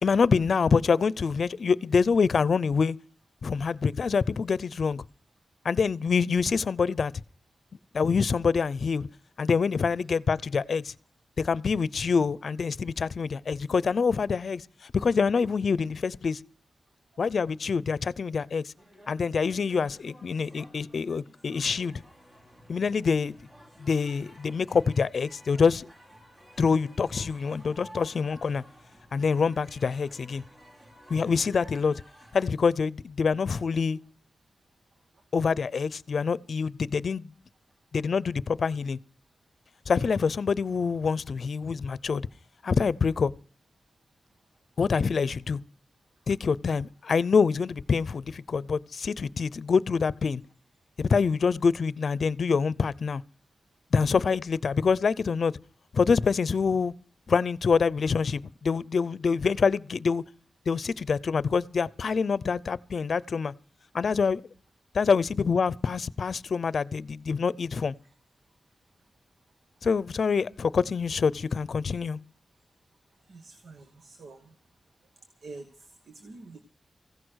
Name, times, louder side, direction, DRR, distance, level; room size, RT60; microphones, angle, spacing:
voice 1, 0.0-3.0 3.4-5.0 5.6-7.1 7.9-9.1 9.4-10.9 11.4-16.4 17.2-18.7 19.1-22.0 22.7-23.4 23.8-25.9 26.6-28.6 29.1-30.4 31.1-32.0 32.3-34.0 35.3-37.3 37.9-39.0 39.9-42.3 42.6-43.3 44.8-45.6 46.3-50.4 51.0-53.2 53.9-55.5 55.9-56.9 57.3-60.2 60.7-63.5 63.9-64.4 64.9-67.9 69.8-72.2, left 5 dB, 70° left, 0.6 m, -26 dB
sound 1, 18.8-32.5, equal, 35° right, 4.5 m, -53 dB
voice 2, 73.3-74.5 75.4-76.6, right 3 dB, 85° right, 1.6 m, -47 dB
15.5 x 11.0 x 6.3 m
wide cardioid pair, 80°, 0 cm